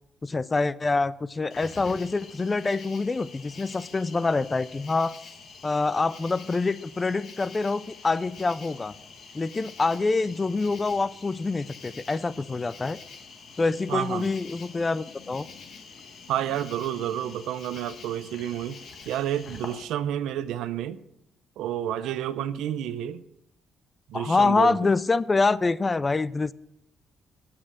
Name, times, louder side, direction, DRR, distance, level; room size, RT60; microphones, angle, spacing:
voice 1, 0.2-5.2 5.6-8.9 9.3-13.0 13.6-15.5 24.1-26.5, left 3 dB, 25° left, 0.4 m, -26 dB
Cricket, 1.5-19.8, left 5 dB, 60° left, 1.4 m, -46 dB
voice 2, 13.9-14.3 16.3-18.8 19.1-21.0 21.6-23.2 24.1-24.8, right 11 dB, 90° right, 0.5 m, -30 dB
8.5 x 7.5 x 7.4 m
cardioid pair, 90°, 0 cm